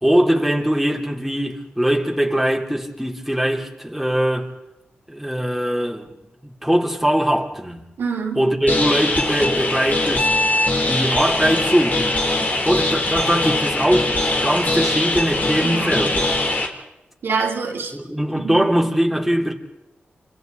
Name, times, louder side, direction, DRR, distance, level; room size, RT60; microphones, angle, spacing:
voice 1, 0.0-4.5 5.1-7.8 8.4-10.3 10.9-12.2 12.6-16.2 17.9-19.5, equal, ahead, 3.4 m, -21 dB
voice 2, 8.0-8.5 15.6-16.0 17.2-18.0 18.4-18.9, right 5 dB, 80° right, 3.6 m, -26 dB
sound 1, 8.7-16.7, left 2 dB, 45° left, 3.5 m, -21 dB
29.0 x 26.0 x 4.1 m
cardioid pair, 55°, 4 cm